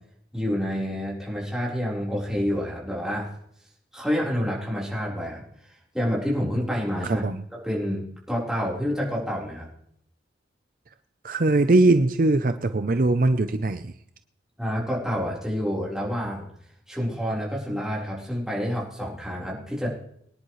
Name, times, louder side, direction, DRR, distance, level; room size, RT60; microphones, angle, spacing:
voice 1, 0.3-3.3 3.9-5.4 5.9-7.3 7.6-9.7 14.6-16.5 16.9-19.9, equal, 5° right, -5 dB, 4.1 m, -28 dB
voice 2, 7.0-7.4 11.2-13.9, right 2 dB, 50° right, 9 dB, 0.6 m, -21 dB
24.0 x 10.5 x 3.2 m, 0.69 s
head